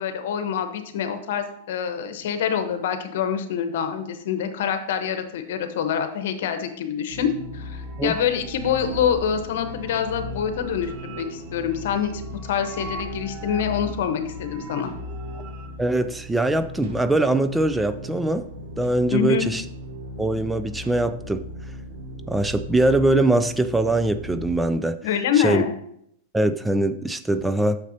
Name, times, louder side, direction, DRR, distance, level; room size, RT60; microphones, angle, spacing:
voice 1, 0.0-14.9 19.1-19.4 25.0-25.7, left 8 dB, 70° left, 8 dB, 1.1 m, -26 dB
sound 1, 7.1-24.6, left 1 dB, 80° right, 1.4 m, -37 dB
sound 2, 7.3-15.7, right 3 dB, 35° right, 1.0 m, -43 dB
voice 2, 15.8-18.5 18.8-19.6 20.2-21.4 22.3-25.0 25.4-25.6 26.3-27.8, right 2 dB, 5° right, 11 dB, 0.3 m, -22 dB
8.2 x 6.6 x 2.8 m, 0.72 s
hypercardioid pair, 125°, 0 cm